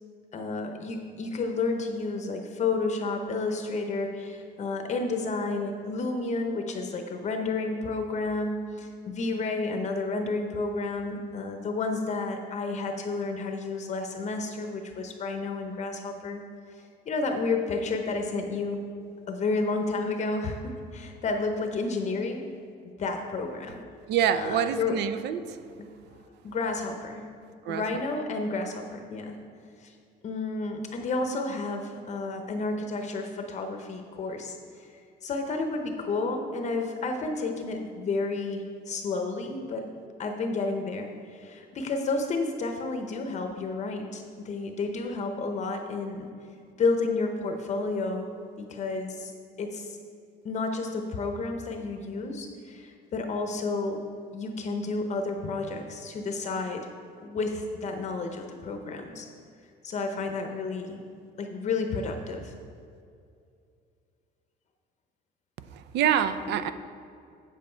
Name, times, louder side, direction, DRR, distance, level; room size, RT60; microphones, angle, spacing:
voice 1, 0.3-16.4 16.7-18.8 19.3-22.4 23.0-23.8 24.3-25.0 25.8-25.9 26.4-27.3 27.7-29.4 29.8-29.9 30.2-39.9 40.2-46.3 46.8-48.3 48.6-49.3 49.6-50.0 50.4-54.0 54.3-56.9 57.2-59.3 59.8-61.0 61.4-62.5, left 3 dB, 40° left, 5 dB, 0.7 m, -31 dB
voice 2, 24.1-25.6 27.7-27.8 65.7-66.7, right 9 dB, 75° right, 12 dB, 0.6 m, -26 dB
8.1 x 7.6 x 4.4 m, 2.4 s
cardioid pair, 135°, 18 cm